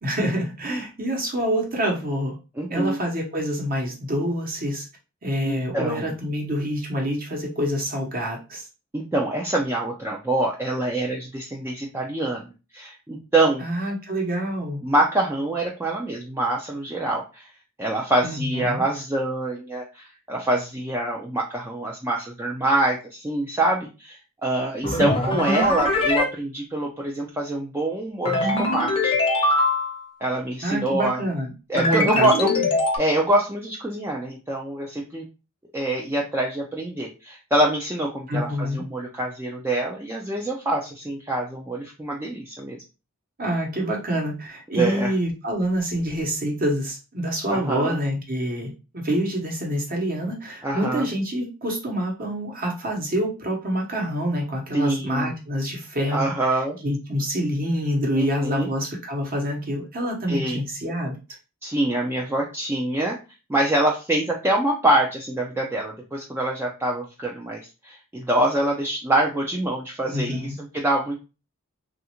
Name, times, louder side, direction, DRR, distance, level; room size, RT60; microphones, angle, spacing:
voice 1, 0.0-2.3 2.7-4.9 5.2-8.7 13.6-14.8 18.2-18.8 24.9-25.3 30.6-32.6 38.3-38.8 43.4-61.2 70.1-70.6, equal, 45° right, 0 dB, 1.0 m, -26 dB
voice 2, 2.6-3.0 5.4-6.1 8.9-12.4 12.7-13.6 14.8-17.5 17.8-29.2 30.2-31.2 31.7-32.5 33.0-35.2 35.7-42.8 44.7-45.1 47.5-48.0 50.6-51.1 54.7-55.3 56.1-56.8 58.2-58.7 60.3-60.6 61.6-63.2 63.5-71.2, right 1 dB, 10° right, -2 dB, 0.4 m, -25 dB
sound 1, 24.8-26.3 28.2-30.0 31.8-33.0, left 2 dB, 25° left, 0.6 m, -22 dB
3.2 x 2.4 x 2.9 m, 0.30 s
head